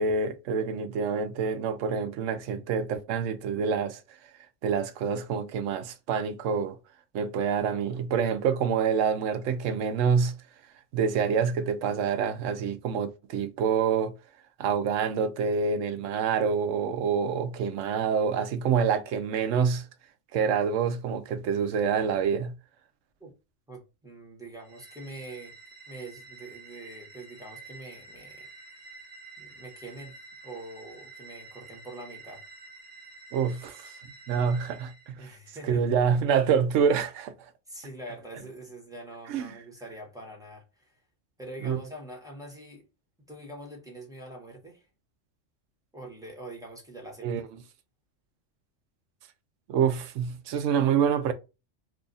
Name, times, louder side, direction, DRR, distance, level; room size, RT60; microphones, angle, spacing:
voice 1, 0.0-4.0 4.6-6.8 7.1-10.4 10.9-14.1 14.6-19.9 20.3-22.5 33.3-33.9 34.3-35.3 35.6-37.3 39.3-39.5 41.6-41.8 47.2-47.5 49.7-51.3, right 6 dB, 80° right, 0.9 m, -27 dB
voice 2, 23.7-25.5 25.9-28.5 29.4-30.2 30.4-32.4 35.2-35.8 37.7-41.0 41.4-42.8 43.3-44.9 45.9-47.3, right 1 dB, 5° right, 1.1 m, -44 dB
sound 1, 24.6-35.1, right 3 dB, 60° right, 1.1 m, -49 dB
2.7 x 2.4 x 3.8 m
omnidirectional pair, 1.3 m